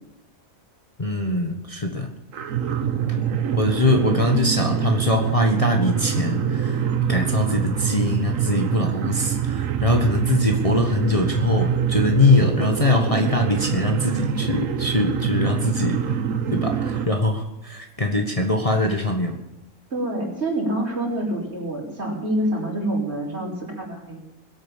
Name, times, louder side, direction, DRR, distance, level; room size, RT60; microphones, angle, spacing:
voice 1, 1.0-2.1 3.1-3.2 3.5-6.8 7.1-16.0 16.5-19.4, left 2 dB, 25° left, 3 dB, 1.4 m, -22 dB
sound 1, 2.3-17.1, right 8 dB, 70° right, 1.3 m, -25 dB
voice 2, 19.9-24.3, right 1 dB, 50° right, -3 dB, 5.5 m, -26 dB
21.5 x 9.0 x 7.3 m, 0.92 s
omnidirectional pair, 1.5 m